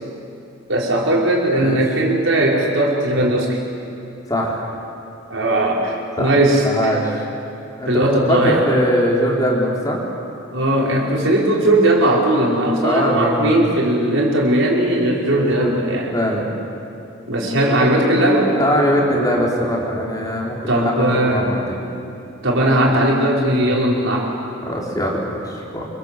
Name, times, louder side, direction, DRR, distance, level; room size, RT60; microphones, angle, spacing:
voice 1, 0.7-3.6 5.3-6.9 7.9-8.6 10.5-16.1 17.3-18.5 20.7-21.5 22.4-24.3, right 1 dB, 70° right, -3 dB, 5.3 m, -18 dB
voice 2, 4.3-4.7 6.2-6.4 6.6-7.2 7.8-10.0 12.8-13.6 15.3-15.7 16.1-16.5 18.6-21.8 24.6-25.9, equal, 20° left, -3 dB, 4.2 m, -21 dB
28.0 x 25.0 x 7.7 m, 2.7 s
head